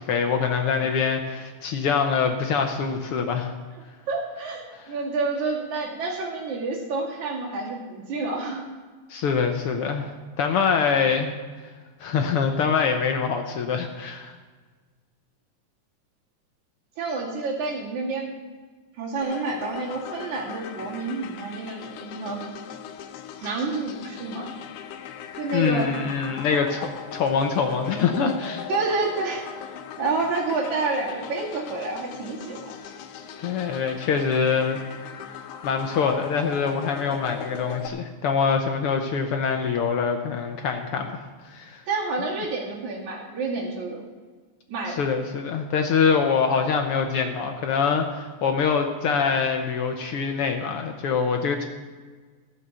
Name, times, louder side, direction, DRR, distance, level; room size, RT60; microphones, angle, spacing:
voice 1, 0.0-3.5 9.1-11.3 12.0-14.3 25.5-28.7 33.4-34.8 35.6-41.8 44.9-51.7, left 6 dB, 70° left, 4 dB, 1.4 m, -24 dB
voice 2, 4.1-8.7 17.0-18.3 19.0-22.4 23.4-24.5 25.4-25.9 28.7-29.4 30.0-32.8 41.9-44.0 44.7-45.0, right 3 dB, 75° right, -2 dB, 3.7 m, -29 dB
sound 1, 19.2-37.9, left 8 dB, 85° left, 2.2 m, -39 dB
15.0 x 6.9 x 7.0 m, 1.4 s
omnidirectional pair, 3.4 m